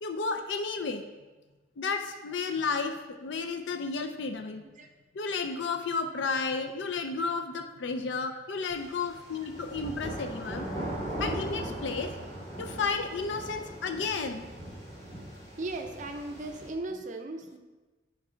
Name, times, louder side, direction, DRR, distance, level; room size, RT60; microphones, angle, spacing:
voice 1, 0.0-1.0 1.8-4.6 5.1-10.7 11.2-12.1 12.6-14.5, left 4 dB, 80° left, 6 dB, 0.5 m, -32 dB
sound 1, 8.7-16.7, right 1 dB, 30° left, 2.5 m, -39 dB
voice 2, 15.6-17.6, right 2 dB, 45° right, 5 dB, 0.5 m, -37 dB
6.4 x 4.6 x 4.9 m, 1.2 s
head